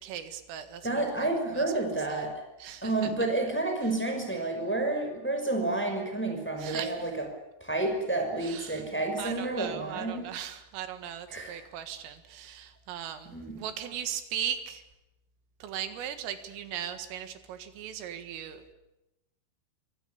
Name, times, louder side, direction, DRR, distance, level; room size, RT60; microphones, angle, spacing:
voice 1, 0.0-1.7 2.1-2.3 2.6-2.9 6.6-7.1 8.4-8.9 9.2-14.8 15.6-18.7, right 9 dB, 80° right, 9 dB, 4.3 m, -38 dB
voice 2, 0.8-2.4 2.8-7.2 7.6-10.3 11.3-11.6 13.3-13.6, right 2 dB, ahead, 4 dB, 4.9 m, -30 dB
26.5 x 24.0 x 7.1 m, 0.94 s
omnidirectional pair, 5.8 m